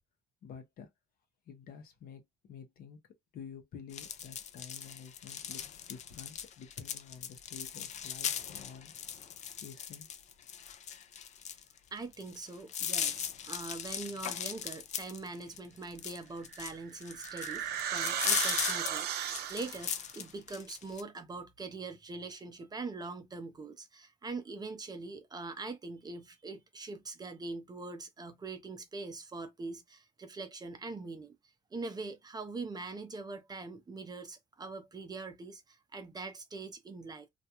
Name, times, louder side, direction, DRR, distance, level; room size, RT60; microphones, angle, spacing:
voice 1, 0.4-0.9 1.4-3.0 3.3-8.9 9.6-10.1, left 7 dB, 60° left, 0.8 m, -50 dB
sound 1, 3.9-21.0, left 8 dB, 45° left, 0.4 m, -38 dB
voice 2, 11.9-31.3 31.7-37.3, right 3 dB, 25° right, 0.5 m, -43 dB
sound 2, 16.5-20.0, right 10 dB, 70° right, 0.5 m, -35 dB
2.4 x 2.2 x 2.8 m
cardioid pair, 110°, 17 cm